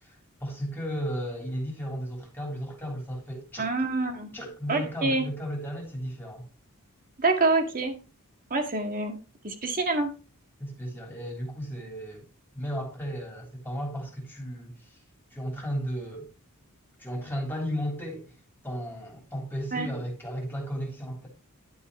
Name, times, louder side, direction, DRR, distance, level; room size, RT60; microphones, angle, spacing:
voice 1, 0.0-3.7 4.3-6.4 10.6-12.3 12.6-15.0 15.3-16.3 17.0-18.3 18.6-21.3, equal, 10° left, 3.4 m, -34 dB
voice 2, 3.6-4.3 4.7-5.3 7.2-8.0 8.5-9.2 9.4-10.1 19.7-19.9, right 3 dB, 40° right, 1.9 m, -26 dB
11.5 x 7.0 x 3.2 m
head